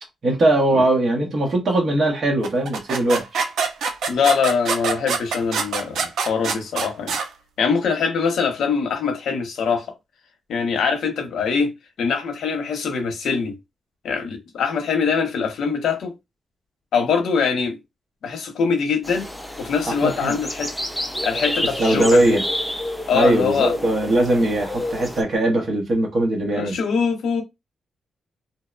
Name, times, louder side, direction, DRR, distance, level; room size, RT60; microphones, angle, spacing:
voice 1, 0.2-3.4 19.9-20.3 21.8-22.4 23.1-26.8, right 1 dB, 45° right, 0.8 m, -20 dB
sound 1, 2.4-7.3, right 5 dB, 85° right, 0.4 m, -25 dB
voice 2, 4.1-7.2 7.6-9.9 10.5-11.7 12.0-13.5 14.0-16.1 16.9-17.8 18.2-19.3 19.6-20.7 21.2-22.4 23.1-23.7 26.5-27.4, left 5 dB, 80° left, 0.7 m, -23 dB
sound 2, 19.0-25.2, left 1 dB, ahead, 0.4 m, -29 dB
2.7 x 2.0 x 2.3 m
wide cardioid pair, 140°, 0 cm